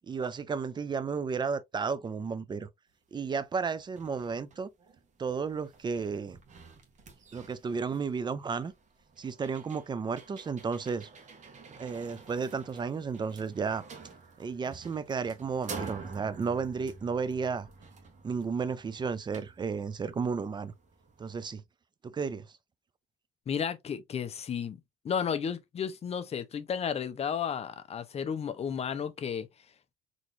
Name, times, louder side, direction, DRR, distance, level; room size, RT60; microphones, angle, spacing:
voice 1, 0.1-2.7 3.1-4.7 5.2-6.4 7.3-8.7 9.2-11.1 11.8-13.9 14.4-17.7 18.2-20.7 21.2-21.6 22.0-22.5, right 5 dB, 25° right, 0.6 m, -33 dB
sound 1, 3.1-3.2 3.6-21.5, right 4 dB, 45° right, 1.4 m, -49 dB
voice 2, 23.5-24.8 25.0-29.5, left 7 dB, 40° left, 0.7 m, -33 dB
4.2 x 3.1 x 2.6 m
cardioid pair, 110°, 17 cm